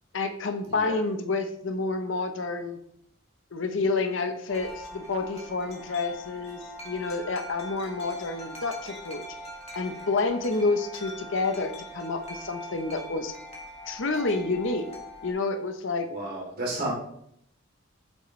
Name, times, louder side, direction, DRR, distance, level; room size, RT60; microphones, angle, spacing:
voice 1, 0.1-2.8 3.5-6.6 6.8-9.2 9.8-13.3 13.9-14.9 15.2-16.1, left 3 dB, 60° left, 7 dB, 0.7 m, -29 dB
voice 2, 0.7-1.0 16.1-16.9, right 1 dB, 45° right, -4 dB, 3.0 m, -32 dB
Wind chime, 4.5-15.3, left 1 dB, 30° left, 1.5 m, -42 dB
8.1 x 6.8 x 3.2 m, 0.73 s
head